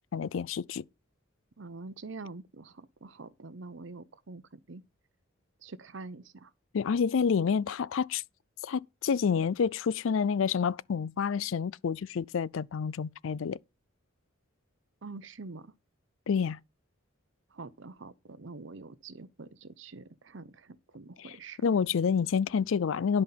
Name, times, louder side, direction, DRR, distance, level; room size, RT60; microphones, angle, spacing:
voice 1, 0.1-0.8 6.7-8.2 8.6-13.6 16.3-16.6 21.2-21.4 21.6-23.2, left 6 dB, 70° left, 0.4 m, -28 dB
voice 2, 1.6-4.8 5.6-6.5 15.0-15.7 17.5-21.6, right 3 dB, 65° right, 0.8 m, -45 dB
10.5 x 5.3 x 5.7 m
head